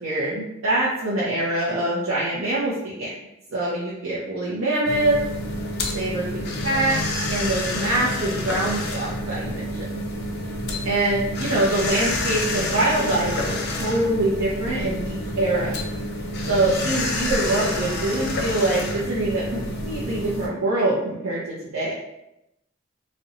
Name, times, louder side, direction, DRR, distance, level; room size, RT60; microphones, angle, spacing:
voice 1, 0.0-3.1 3.5-5.2 5.9-7.0 7.3-9.9 10.8-15.7 16.5-21.4 21.7-21.9, right 2 dB, 85° right, -7 dB, 0.6 m, -24 dB
sound 1, 4.9-20.5, left 1 dB, 55° left, 0.4 m, -28 dB
2.7 x 2.1 x 2.6 m, 0.86 s
head